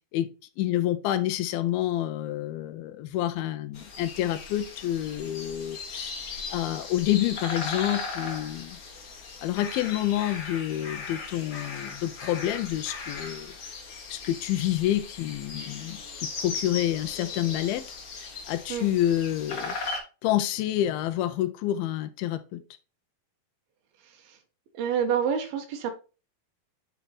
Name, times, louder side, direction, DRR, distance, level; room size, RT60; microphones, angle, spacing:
voice 1, 0.6-6.1 6.5-8.8 9.4-13.5 14.1-17.8 18.2-19.7 20.2-22.6, left 13 dB, 85° left, 10 dB, 2.4 m, -28 dB
sound 1, 3.7-20.0, left 4 dB, 65° left, 1.1 m, -38 dB
voice 2, 24.0-24.4 24.7-25.9, right 7 dB, 80° right, 5 dB, 2.9 m, -28 dB
8.4 x 3.4 x 4.1 m, 0.33 s
omnidirectional pair, 4.3 m